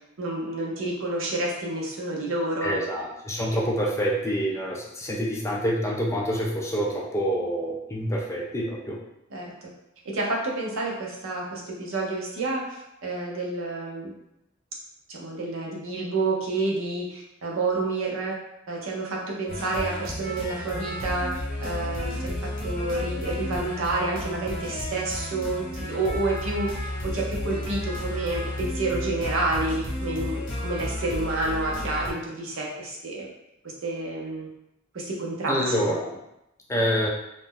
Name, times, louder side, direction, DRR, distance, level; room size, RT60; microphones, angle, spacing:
voice 1, 0.2-2.8 9.3-9.7 10.0-14.1 15.1-18.3 18.7-21.3 21.6-22.4 22.6-33.3 33.8-34.5 34.9-36.0, right 2 dB, 75° right, -2 dB, 0.7 m, -29 dB
voice 2, 2.6-9.0 35.5-36.2 36.7-37.1, equal, 15° left, -2 dB, 0.4 m, -27 dB
sound 1, 19.5-32.1, left 1 dB, 40° left, 1.1 m, -32 dB
2.6 x 2.1 x 3.6 m, 0.85 s
head